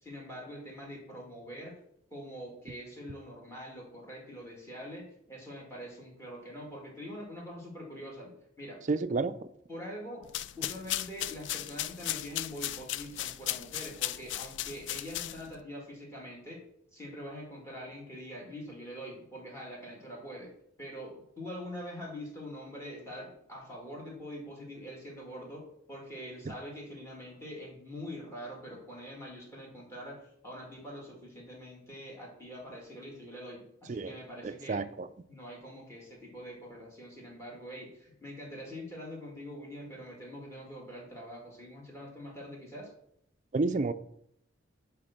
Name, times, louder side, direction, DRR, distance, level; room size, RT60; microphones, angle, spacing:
voice 1, 0.0-1.8 2.1-5.0 5.3-8.3 8.6-8.8 9.7-10.3 10.6-16.6 16.9-20.5 20.8-34.8 35.3-42.9, equal, 15° left, -2 dB, 2.0 m, -44 dB
voice 2, 8.9-9.3 33.9-34.1 34.7-35.1 43.5-43.9, right 3 dB, 40° right, 12 dB, 0.4 m, -29 dB
sound 1, 10.2-15.6, left 13 dB, 65° left, 0.3 m, -36 dB
10.5 x 3.5 x 5.8 m, 0.74 s
head